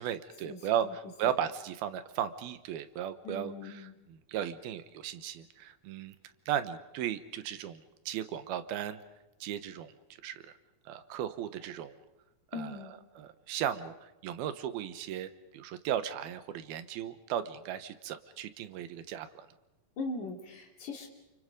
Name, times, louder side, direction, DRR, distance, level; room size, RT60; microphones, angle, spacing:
voice 1, 0.0-6.2 6.5-9.0 9.4-9.9 10.2-10.6 10.9-11.9 12.5-19.5, right 10 dB, 90° right, 12 dB, 3.1 m, -36 dB
voice 2, 3.2-3.9 12.5-12.9 20.0-21.1, left 3 dB, 55° left, 2 dB, 4.4 m, -39 dB
29.0 x 28.5 x 5.3 m, 0.99 s
omnidirectional pair, 4.2 m